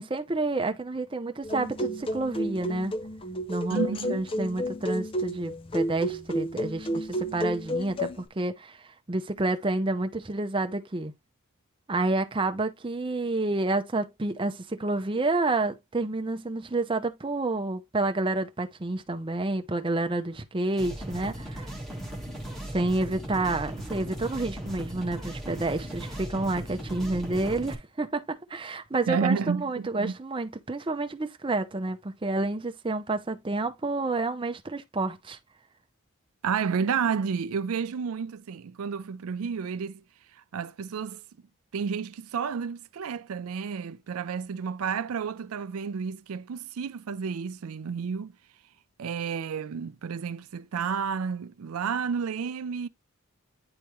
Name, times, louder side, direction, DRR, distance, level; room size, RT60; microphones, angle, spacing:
voice 1, 0.0-2.9 3.5-8.8 9.1-11.1 11.9-21.7 22.7-35.4, right 2 dB, 25° right, 0.6 m, -29 dB
sound 1, 1.4-8.2, equal, 25° left, 0.4 m, -31 dB
voice 2, 3.7-4.2 29.1-30.2 36.4-40.0 40.3-41.2 41.7-48.3 49.0-52.9, right 6 dB, 85° right, 0.4 m, -31 dB
sound 2, 20.7-27.7, right 1 dB, ahead, 1.5 m, -37 dB
9.7 x 3.4 x 3.0 m
head